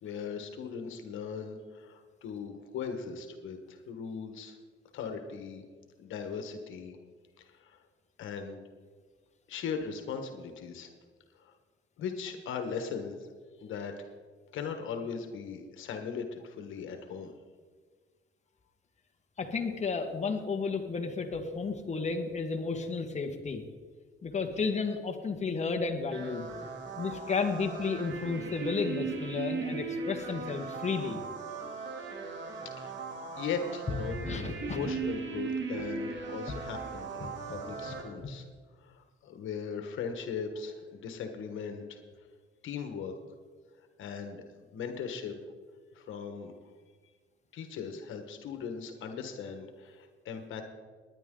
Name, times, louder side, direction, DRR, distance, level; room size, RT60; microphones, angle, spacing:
voice 1, 0.0-4.6 4.9-5.6 6.0-7.0 7.4-7.8 8.2-8.6 9.5-10.9 11.4-11.5 12.0-13.2 13.6-14.0 14.5-17.3 31.6-32.0 32.5-33.0 33.3-38.4 38.8-42.0 42.6-43.1 43.8-44.4 44.7-45.3 45.9-46.5 47.5-50.6, left 6 dB, 80° left, 6 dB, 1.4 m, -39 dB
voice 2, 19.4-23.6 24.2-26.5 27.0-31.2 34.2-34.9 37.2-37.6 37.8-38.3, left 4 dB, 35° left, 4 dB, 1.5 m, -33 dB
sound 1, 26.1-38.0, right 4 dB, 65° right, 2.4 m, -38 dB
19.0 x 10.0 x 3.8 m, 1.5 s
cardioid pair, 90°, 20 cm